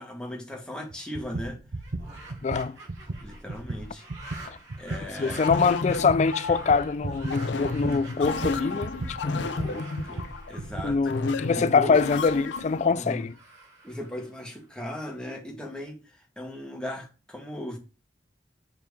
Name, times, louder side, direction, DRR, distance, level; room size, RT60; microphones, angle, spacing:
voice 1, 0.0-1.6 3.2-4.1 4.8-5.5 9.3-10.2 10.5-11.0 11.5-12.0 12.9-13.2 13.8-17.8, left 1 dB, 5° left, 1.5 m, -37 dB
sound 1, 0.9-11.0, right 2 dB, 60° right, 0.7 m, -36 dB
evil witch laughin compilation, 1.7-14.9, right 2 dB, 85° right, 3.3 m, -48 dB
voice 2, 2.4-2.8 4.5-4.6 5.2-8.9 9.3-9.5 10.8-13.4, left 5 dB, 40° left, 0.3 m, -24 dB
sound 2, 5.4-12.9, left 3 dB, 85° left, 0.6 m, -33 dB
6.7 x 4.4 x 3.5 m
head